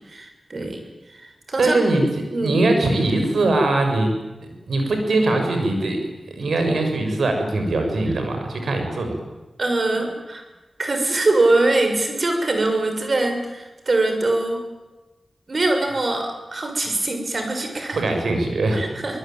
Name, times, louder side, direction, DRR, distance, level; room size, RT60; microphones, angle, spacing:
voice 1, 0.1-1.8 2.3-2.6 9.6-10.4 10.8-14.6 15.5-18.0 18.7-19.2, right 2 dB, 55° right, 5 dB, 6.4 m, -23 dB
voice 2, 1.6-2.0 2.4-4.1 4.7-6.0 6.3-9.2 17.9-18.8, right 2 dB, 85° right, 4 dB, 6.6 m, -21 dB
24.5 x 20.5 x 9.2 m, 1.1 s
cardioid pair, 55°, 0 cm